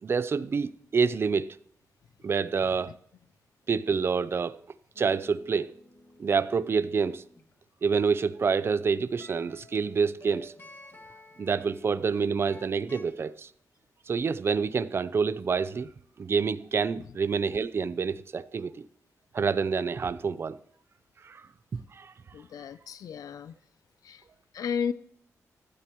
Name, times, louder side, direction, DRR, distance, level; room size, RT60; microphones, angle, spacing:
voice 1, 0.0-1.6 2.2-2.9 3.7-4.6 5.0-5.8 6.2-7.2 7.8-10.5 11.4-13.5 14.1-15.9 16.2-18.9 19.3-20.6 21.2-21.5 21.7-22.1, right 5 dB, 40° right, 0.5 m, -27 dB
sound 1, 4.9-7.6 9.1-13.0, left 1 dB, 35° left, 2.0 m, -53 dB
voice 2, 22.3-23.5 24.0-24.2 24.5-24.9, left 7 dB, 80° left, 0.5 m, -33 dB
15.0 x 15.0 x 3.1 m
wide cardioid pair, 145°, 6 cm